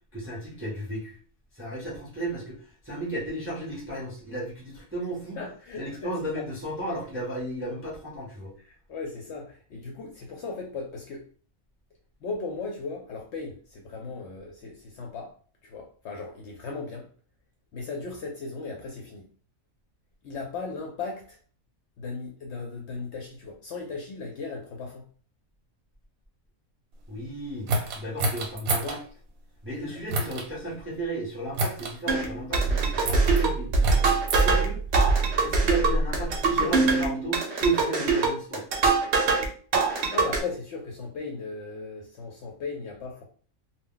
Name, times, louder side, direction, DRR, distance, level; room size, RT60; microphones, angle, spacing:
voice 1, 0.1-1.2 1.5-5.4 5.8-8.5 27.1-29.0 29.6-34.8 35.4-38.6, right 1 dB, 15° right, -5 dB, 0.5 m, -34 dB
voice 2, 5.4-6.4 8.6-11.3 12.2-15.3 15.6-17.1 17.7-19.3 20.2-21.4 22.0-25.0 28.7-29.0 29.8-30.0 40.1-43.2, left 4 dB, 65° left, 1 dB, 0.7 m, -37 dB
sound 1, 27.7-29.0 30.1-30.5 31.5-31.9 33.0-33.4 33.8-34.4 35.3-36.8, right 1 dB, 85° right, 1.1 m, -29 dB
sound 2, 32.1-39.5 39.7-40.4, right 4 dB, 60° right, 0.8 m, -23 dB
2.2 x 2.1 x 3.7 m, 0.43 s
omnidirectional pair, 1.5 m